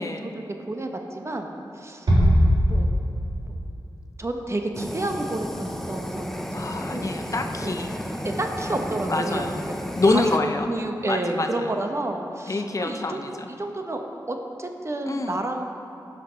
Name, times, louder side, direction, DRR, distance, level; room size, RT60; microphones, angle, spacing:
voice 1, 0.0-1.5 1.7-2.1 2.7-2.9 3.5-3.6 4.2-7.1 8.2-9.8 10.1-10.2 10.7-14.0 14.3-15.7, right 2 dB, 35° right, 3 dB, 0.9 m, -30 dB
Bass drum, 2.1-3.5, equal, 80° right, 2.7 m, -19 dB
Fire, 4.7-10.4, equal, 5° left, 0.7 m, -33 dB
voice 2, 6.5-7.9 9.1-9.6 10.0-10.7 11.1-11.7 12.5-13.5 15.1-15.4, left 2 dB, 45° left, 5 dB, 0.6 m, -26 dB
15.0 x 5.9 x 5.0 m, 2.7 s
wide cardioid pair, 80°, 8 cm